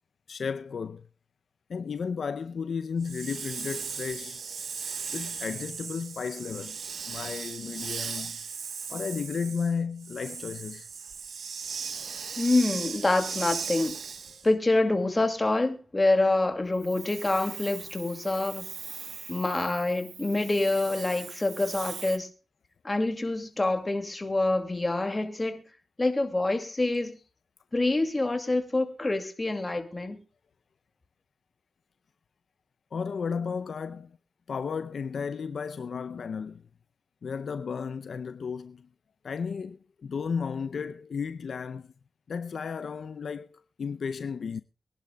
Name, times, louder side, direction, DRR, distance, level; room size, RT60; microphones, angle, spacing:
voice 1, 0.3-1.0 1.7-4.4 5.1-8.4 8.9-10.9 32.9-34.2 34.5-36.6 37.2-38.9 39.2-41.9 42.3-44.6, left 6 dB, 70° left, 0.5 m, -34 dB
Hiss, 3.0-14.5 16.8-22.2, right 6 dB, 70° right, 1.1 m, -38 dB
voice 2, 12.4-14.0 14.4-18.7 19.3-22.3 22.8-25.6 26.0-27.2 27.7-30.2, left 2 dB, 25° left, 2.3 m, -26 dB
23.0 x 11.0 x 2.3 m
cardioid pair, 75°, 0 cm